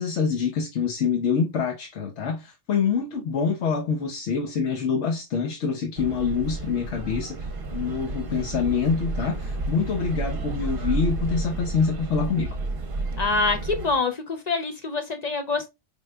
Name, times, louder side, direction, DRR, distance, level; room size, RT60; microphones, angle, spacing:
voice 1, 0.0-12.5, left 6 dB, 70° left, 0.9 m, -26 dB
sound 1, 6.0-14.0, right 2 dB, 50° right, 0.8 m, -31 dB
voice 2, 13.2-15.7, left 3 dB, 50° left, 0.5 m, -25 dB
5.2 x 2.3 x 3.1 m
omnidirectional pair, 1.3 m